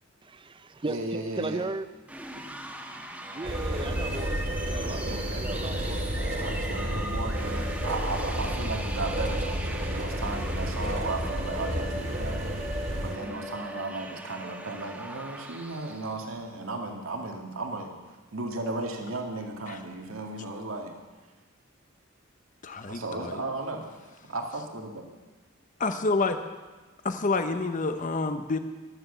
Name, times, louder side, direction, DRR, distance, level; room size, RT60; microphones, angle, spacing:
voice 1, 0.2-1.9 3.3-4.3 4.6-6.0, right 2 dB, 25° right, 0.6 m, -36 dB
voice 2, 0.9-1.6 4.7-21.3 22.9-25.1, right 2 dB, 85° right, 2.2 m, -36 dB
sound 1, 2.0-16.2, right 1 dB, 5° right, 1.3 m, -40 dB
sound 2, 3.4-13.2, equal, 40° right, 2.2 m, -31 dB
voice 3, 22.6-23.4 25.8-26.4 27.0-28.6, left 3 dB, 40° left, 0.8 m, -28 dB
14.5 x 12.5 x 6.8 m
head